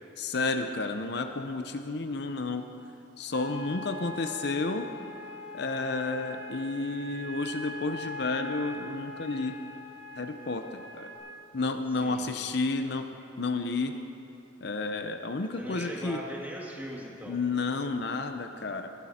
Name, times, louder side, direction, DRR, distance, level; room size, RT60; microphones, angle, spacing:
voice 1, 0.2-2.7 3.2-4.9 5.5-9.6 10.2-11.1 11.5-13.1 13.4-14.0 14.6-16.2 17.3-18.9, left 3 dB, 60° left, 7 dB, 0.7 m, -31 dB
sound 1, 3.3-11.2, left 2 dB, 90° right, 4.6 m, -42 dB
voice 2, 15.5-17.4, equal, 10° right, -3 dB, 2.2 m, -39 dB
20.5 x 13.5 x 4.3 m, 2.8 s
head